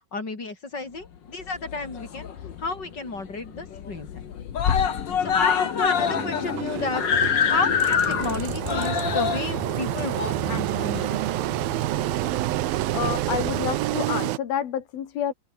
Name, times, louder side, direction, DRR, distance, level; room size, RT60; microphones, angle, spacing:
voice 1, 0.1-2.3 2.6-4.1 5.2-7.0 7.5-11.3, left 3 dB, 30° left, 4.8 m, -31 dB
sound 1, 0.9-14.1, left 9 dB, 70° left, 3.7 m, -38 dB
Screaming, 1.6-2.6 2.9-3.0 3.3-3.4 3.7-4.2 4.5-11.3 12.2-12.3, left 7 dB, 45° left, 1.6 m, -25 dB
Engine, 6.0-14.4, right 16 dB, 85° right, 2.8 m, -28 dB
voice 2, 12.9-15.3, left 9 dB, 90° left, 4.2 m, -29 dB
omnidirectional pair, 4.1 m